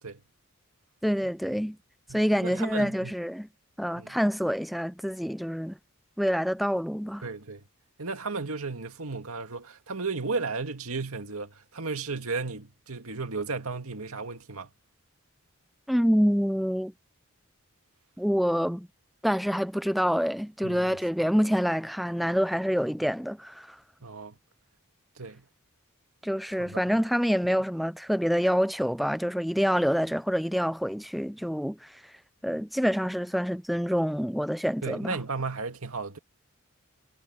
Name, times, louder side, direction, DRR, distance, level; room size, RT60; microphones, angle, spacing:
voice 1, 1.0-1.8 2.1-3.5 3.8-5.8 6.2-7.2 15.9-16.9 18.2-18.9 19.2-23.8 26.2-32.0 32.4-35.2, equal, ahead, 0.3 m, -27 dB
voice 2, 2.1-3.1 4.0-4.2 7.2-7.6 8.0-14.7 20.6-21.0 24.0-24.4 25.2-25.5 26.6-26.8 34.8-36.2, right 4 dB, 85° right, 2.1 m, -34 dB
head